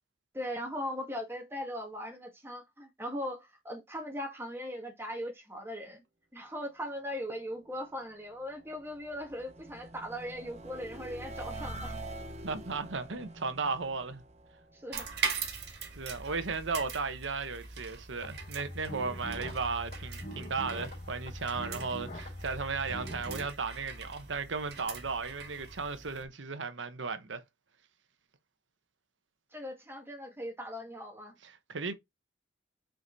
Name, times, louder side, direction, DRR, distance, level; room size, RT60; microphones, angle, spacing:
voice 1, 0.3-6.0 6.3-12.0 14.7-15.1 29.5-31.4, equal, 15° right, 1.9 m, -39 dB
sound 1, 8.2-15.4, right 1 dB, 35° right, 0.9 m, -45 dB
voice 2, 12.4-14.2 16.0-27.4 31.4-31.9, right 4 dB, 85° right, 1.0 m, -35 dB
sound 2, 14.9-26.2, right 5 dB, 60° right, 2.1 m, -41 dB
sound 3, 18.2-23.5, equal, 40° left, 3.4 m, -43 dB
5.3 x 5.1 x 4.0 m
head